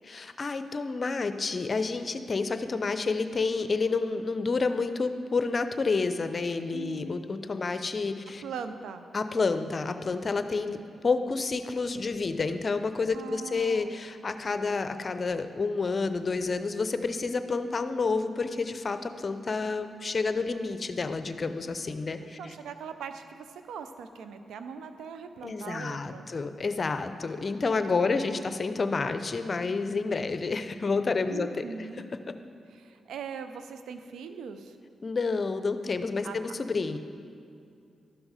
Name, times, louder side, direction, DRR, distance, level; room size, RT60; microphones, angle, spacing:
voice 1, 0.1-8.4 9.1-10.8 11.0-22.4 25.4-31.6 35.0-37.0, left 4 dB, 50° left, 10 dB, 0.6 m, -29 dB
voice 2, 6.7-7.1 8.4-9.0 13.1-14.0 22.2-26.3 28.0-28.4 31.2-32.0 32.7-34.8 36.2-36.6, right 6 dB, 80° right, 9 dB, 0.5 m, -41 dB
12.0 x 6.2 x 4.9 m, 2.4 s
supercardioid pair, 45°, 0 cm